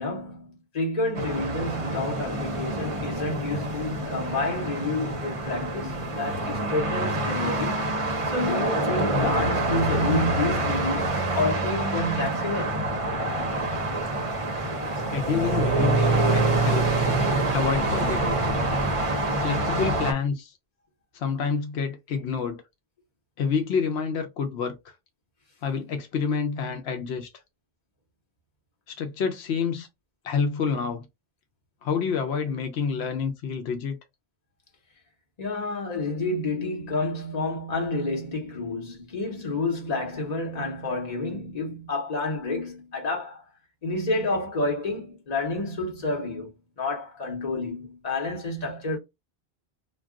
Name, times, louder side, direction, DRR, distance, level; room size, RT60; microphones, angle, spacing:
voice 1, 0.0-7.8 8.3-12.8 35.4-43.4 43.8-49.0, left 2 dB, 40° left, 1.1 m, -29 dB
sound 1, 1.1-20.1, right 2 dB, 40° right, 0.6 m, -26 dB
voice 2, 15.1-16.9 17.5-18.4 19.4-20.5 21.1-22.6 23.4-24.9 25.6-27.3 28.9-29.9 30.2-31.1 31.8-34.0, left 6 dB, 85° left, 0.9 m, -28 dB
2.3 x 2.3 x 3.6 m
omnidirectional pair, 1.1 m